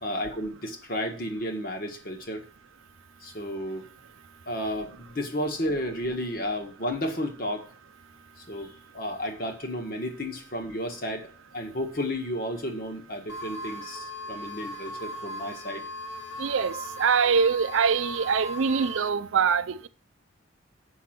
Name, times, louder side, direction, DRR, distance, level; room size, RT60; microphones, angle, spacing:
voice 1, 0.0-2.4 3.2-3.9 4.5-7.7 8.4-15.8, equal, 45° left, 1.5 m, -32 dB
sound 1, 13.3-19.1, equal, 65° left, 2.0 m, -38 dB
voice 2, 16.4-19.9, right 6 dB, 85° right, 0.5 m, -24 dB
7.1 x 5.9 x 5.9 m
head